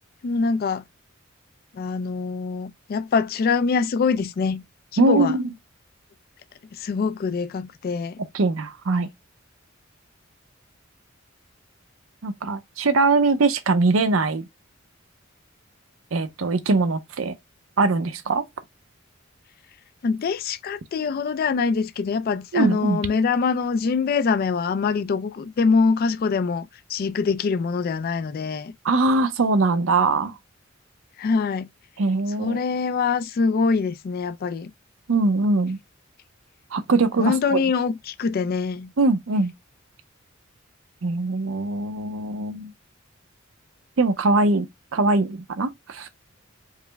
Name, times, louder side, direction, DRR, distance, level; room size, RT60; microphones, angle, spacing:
voice 1, 0.2-0.8 1.7-4.6 4.9-5.4 6.7-8.2 20.0-28.7 31.2-31.7 32.4-34.7 37.2-38.9, left 5 dB, 45° left, 0.3 m, -24 dB
voice 2, 5.0-5.4 8.3-9.1 12.2-14.5 16.1-17.3 17.8-18.4 22.5-23.0 28.8-30.3 32.0-32.6 35.1-35.8 36.7-37.6 39.0-39.5 41.0-42.7 44.0-44.7 44.9-46.1, right 3 dB, 75° right, 0.6 m, -21 dB
4.8 x 2.1 x 3.3 m
head